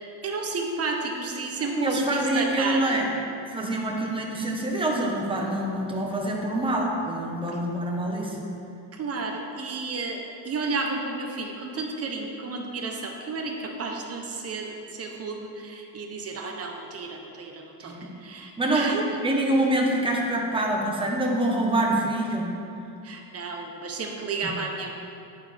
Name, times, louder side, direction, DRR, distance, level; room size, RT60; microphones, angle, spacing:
voice 1, 0.2-3.0 7.5-7.6 8.9-19.0 23.0-24.9, right 3 dB, 30° right, 2 dB, 0.9 m, -32 dB
voice 2, 1.6-3.0 3.5-8.4 17.8-18.1 18.6-18.9 19.2-22.5 24.4-24.5, right 1 dB, 10° right, -1 dB, 1.2 m, -26 dB
10.5 x 8.8 x 3.4 m, 2.6 s
cardioid pair, 145°, 47 cm